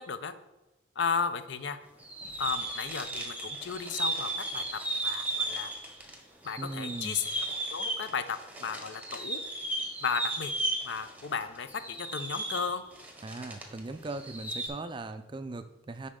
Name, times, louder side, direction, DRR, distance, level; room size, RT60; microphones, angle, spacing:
voice 1, 1.0-1.8 2.4-5.7 6.4-7.3 7.7-9.4 10.0-10.5 10.8-12.8, left 6 dB, 65° left, 11 dB, 0.5 m, -34 dB
sound 1, 2.0-6.2 6.4-13.8 14.0-14.7, right 1 dB, 10° right, 0.9 m, -35 dB
voice 2, 6.6-7.2 13.2-16.1, right 2 dB, 25° right, 10 dB, 0.3 m, -39 dB
10.5 x 4.1 x 3.6 m, 1.1 s
head